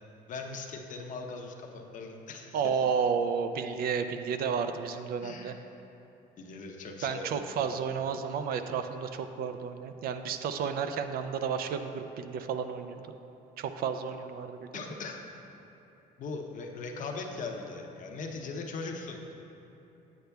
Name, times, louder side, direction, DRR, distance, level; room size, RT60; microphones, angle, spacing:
voice 1, 0.3-2.6 5.2-5.5 6.4-7.7 14.7-15.2 16.2-19.3, left 3 dB, 50° left, 2 dB, 0.7 m, -40 dB
voice 2, 2.5-5.5 7.0-13.0 13.6-14.8, right 6 dB, 65° right, 8 dB, 0.4 m, -32 dB
8.3 x 7.8 x 2.3 m, 2.9 s
cardioid pair, 110°, 17 cm